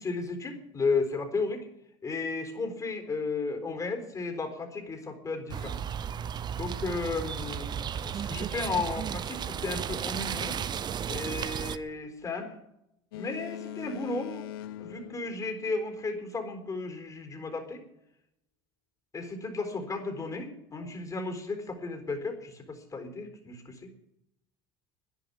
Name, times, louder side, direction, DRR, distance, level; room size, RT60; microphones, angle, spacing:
voice 1, 0.0-1.7 2.0-5.8 6.5-10.6 11.1-12.5 13.1-14.5 14.8-17.8 19.1-23.9, left 3 dB, 30° left, 6 dB, 4.1 m, -34 dB
sound 1, 5.5-11.8, right 8 dB, 35° right, 0.8 m, -34 dB
Boat Water vehicle, 13.1-16.2, left 11 dB, 85° left, 0.7 m, -42 dB
11.0 x 10.5 x 9.5 m, 0.82 s
supercardioid pair, 95°, 12 cm